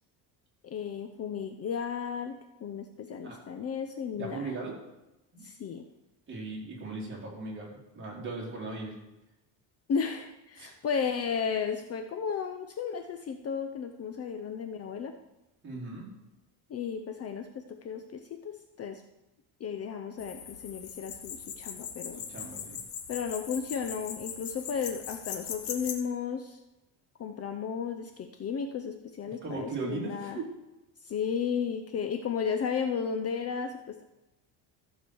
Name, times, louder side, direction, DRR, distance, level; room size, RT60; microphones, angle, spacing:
voice 1, 0.6-2.4 2.6-4.5 5.4-5.9 9.9-15.1 16.7-19.0 19.6-22.2 23.1-26.6 27.2-30.4 31.0-34.0, left 6 dB, 35° left, 6 dB, 0.7 m, -34 dB
voice 2, 4.1-4.8 5.3-5.4 6.3-9.0 10.6-10.7 15.6-16.1 22.1-22.8 29.4-30.5, right 3 dB, 25° right, -4 dB, 3.8 m, -38 dB
sound 1, 20.2-25.9, left 8 dB, 60° left, 1.6 m, -40 dB
14.5 x 5.0 x 7.0 m, 0.96 s
cardioid pair, 145°, 44 cm